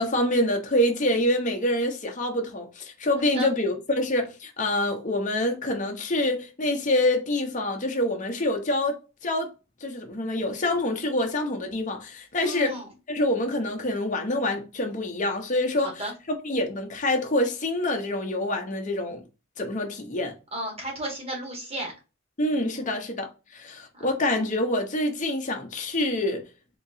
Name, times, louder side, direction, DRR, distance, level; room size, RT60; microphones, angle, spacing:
voice 1, 0.0-9.5 9.8-12.8 13.1-16.0 16.3-19.2 19.6-20.3 22.4-26.4, left 1 dB, 35° left, 0.7 m, -26 dB
voice 2, 12.4-12.9 15.8-16.1 20.5-21.9 22.7-23.0 23.9-24.0, right 1 dB, 30° right, 1.3 m, -34 dB
3.7 x 2.9 x 2.6 m
head